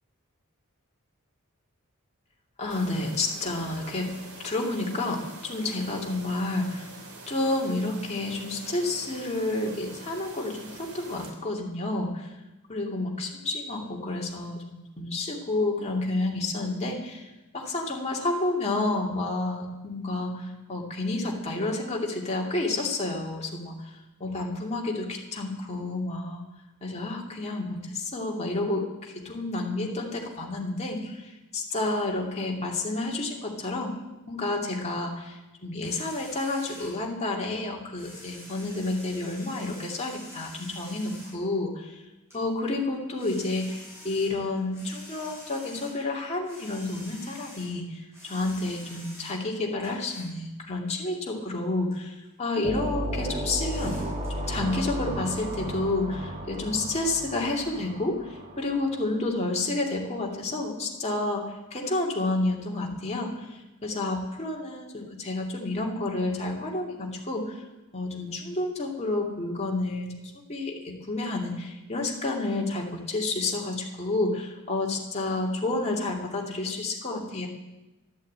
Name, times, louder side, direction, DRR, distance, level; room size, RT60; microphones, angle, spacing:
voice 1, 2.6-4.1 4.4-6.9 7.3-12.3 12.7-23.9 24.2-26.4 26.8-34.0 34.3-42.0 42.3-54.0 54.4-67.6 67.9-70.1 70.5-77.5, left 2 dB, 30° left, -1 dB, 2.5 m, -30 dB
sound 1, 2.7-11.3, right 3 dB, 80° right, 3.1 m, -45 dB
sound 2, 35.8-37.0 37.7-41.4 42.3-42.4 42.9-46.0 46.3-49.4 49.8-50.3 51.2-51.3 51.9-52.2 52.7-52.8 53.7-54.3, equal, 10° right, 7.6 m, -47 dB
sound 3, 52.6-59.1, right 1 dB, 30° right, 2.3 m, -34 dB
12.5 x 11.0 x 8.6 m, 1.0 s
head